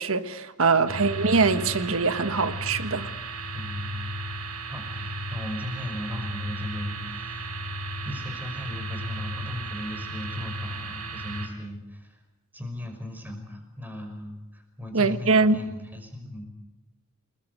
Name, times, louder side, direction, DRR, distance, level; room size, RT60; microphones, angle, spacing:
voice 1, 0.0-3.1 14.9-15.6, right 4 dB, 65° right, 1.6 m, -23 dB
sound 1, 0.9-11.5, right 1 dB, 90° right, 4.7 m, -34 dB
voice 2, 3.5-3.9 4.7-7.6 8.0-12.2 12.5-16.5, left 1 dB, 10° right, 5.6 m, -38 dB
28.5 x 21.0 x 8.1 m
head